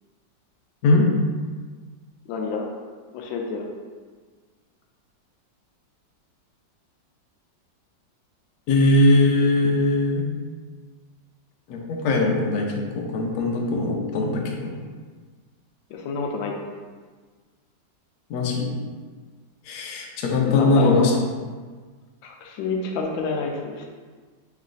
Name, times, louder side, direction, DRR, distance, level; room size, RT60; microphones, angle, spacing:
voice 1, 2.3-2.7 3.1-3.7 15.9-16.5 20.4-21.2 22.2-23.9, left 4 dB, 90° left, 1 dB, 1.3 m, -28 dB
voice 2, 8.7-10.2 11.7-14.8 18.3-18.7 19.7-21.1, left 2 dB, 70° left, 0 dB, 1.0 m, -20 dB
3.2 x 3.2 x 3.8 m, 1.5 s
omnidirectional pair, 2.0 m